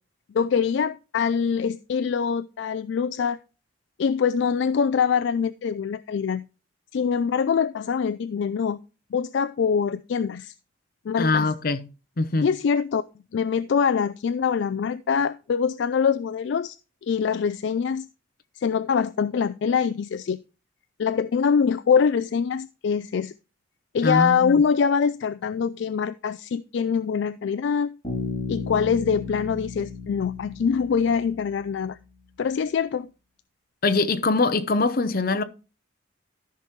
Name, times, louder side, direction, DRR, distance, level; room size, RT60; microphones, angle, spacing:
voice 1, 0.3-3.4 4.0-6.4 6.9-8.8 9.1-10.5 11.1-11.5 12.4-13.0 13.3-16.8 17.0-18.1 18.6-20.4 21.0-23.3 23.9-27.9 28.5-32.0 32.4-33.1, left 6 dB, 60° left, 0.3 m, -24 dB
voice 2, 11.2-11.9 12.2-12.5 24.0-24.6 33.8-35.4, left 3 dB, 45° left, 0.7 m, -23 dB
Bass guitar, 28.0-31.7, left 4 dB, 25° left, 4.7 m, -34 dB
13.5 x 5.8 x 3.1 m
head